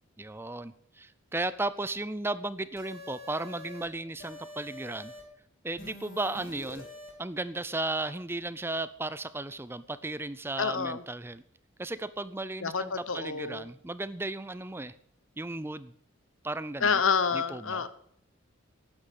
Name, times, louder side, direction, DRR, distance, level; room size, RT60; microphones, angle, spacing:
voice 1, 0.2-5.1 5.6-6.9 7.2-11.4 11.8-14.9 15.4-15.9 16.4-16.9 17.3-17.8, right 2 dB, 10° right, 15 dB, 0.5 m, -35 dB
sound 1, 2.8-3.9 4.2-5.2 5.8-7.1, left 1 dB, 45° left, 3.5 m, -46 dB
voice 2, 10.6-11.0 12.6-13.7 16.8-17.9, left 5 dB, 80° left, 14 dB, 1.0 m, -28 dB
12.0 x 9.8 x 8.3 m, 0.66 s
head